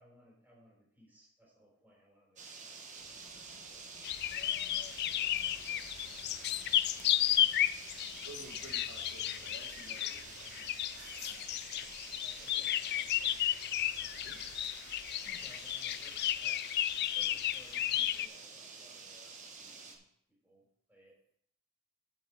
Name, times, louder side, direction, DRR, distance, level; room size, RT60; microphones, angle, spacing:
voice 1, 0.0-4.1 5.1-7.1 12.2-13.5 13.9-14.4 15.2-16.7 17.1-21.2, equal, 10° right, -4 dB, 3.6 m, -63 dB
sound 1, 2.4-20.0, right 4 dB, 35° right, 1.2 m, -49 dB
sound 2, 3.0-8.9, left 4 dB, 85° left, 1.0 m, -61 dB
sound 3, 4.0-18.3, left 12 dB, 50° left, 0.3 m, -33 dB
voice 2, 8.2-11.4 14.2-14.6, right 2 dB, 80° right, 2 dB, 1.5 m, -53 dB
8.2 x 7.2 x 4.5 m, 0.69 s
head